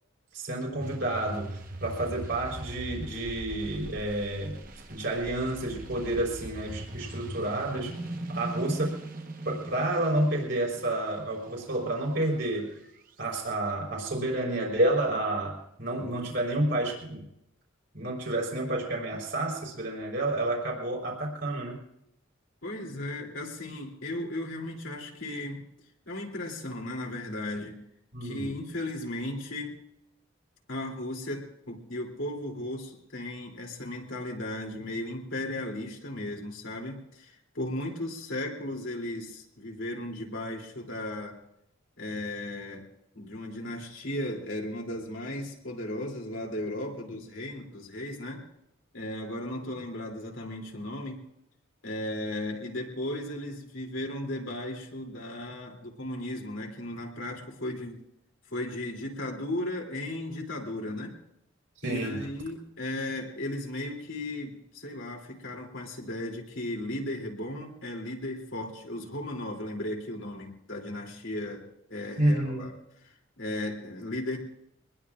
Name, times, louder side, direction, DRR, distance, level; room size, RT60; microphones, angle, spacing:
voice 1, 0.3-4.6 4.9-7.9 8.3-9.0 9.4-12.7 13.2-17.3 17.9-21.8 28.1-28.5 61.8-62.3 72.2-72.7, right 1 dB, 60° right, -2 dB, 4.1 m, -30 dB
sound 1, 0.8-13.2, right 1 dB, 45° right, 1.2 m, -40 dB
voice 2, 22.6-25.6 26.1-27.7 28.2-29.7 30.7-41.4 42.0-42.9 43.1-48.4 48.9-51.2 51.8-58.0 58.5-61.2 61.8-71.6 71.9-72.7 73.0-74.4, left 1 dB, 75° left, 0 dB, 3.0 m, -36 dB
24.5 x 20.0 x 2.5 m, 0.79 s
head